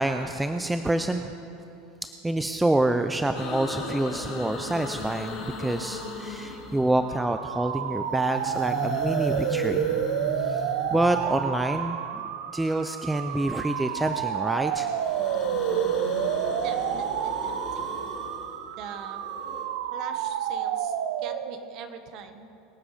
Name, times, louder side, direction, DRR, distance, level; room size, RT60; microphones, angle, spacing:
voice 1, 0.0-1.3 2.2-10.0 10.4-10.6 10.9-12.0 12.5-14.9, right 1 dB, 5° right, 7 dB, 0.3 m, -27 dB
sound 1, 3.3-7.3 8.0-11.8 13.1-14.3 14.6-19.6, left 3 dB, 45° left, 3.5 m, -37 dB
sound 2, 7.1-21.7, right 9 dB, 75° right, 0.7 m, -29 dB
voice 2, 16.6-18.0 18.8-19.2 19.9-22.5, right 7 dB, 40° right, 8 dB, 1.1 m, -42 dB
23.0 x 7.9 x 4.9 m, 2.7 s
supercardioid pair, 170°, 0 cm